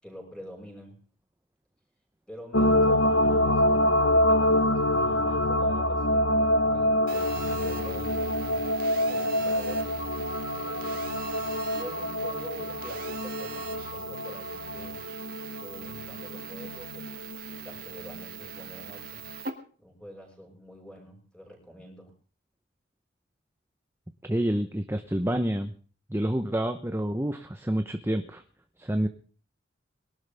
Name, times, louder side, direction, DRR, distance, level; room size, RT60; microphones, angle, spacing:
voice 1, 0.0-1.0 2.3-3.8 4.2-8.5 9.1-10.1 10.5-11.1 11.7-15.0 15.6-19.2 19.8-22.1, equal, 5° left, 1 dB, 6.2 m, -46 dB
sound 1, 2.5-18.2 18.6-18.7, left 1 dB, 75° left, 1.4 m, -26 dB
Telephone, 7.1-19.5, right 7 dB, 45° right, 2.5 m, -42 dB
voice 2, 24.3-25.7 26.1-28.4 28.8-29.1, right 1 dB, 10° right, 8 dB, 0.8 m, -28 dB
22.0 x 12.5 x 3.5 m, 0.42 s
head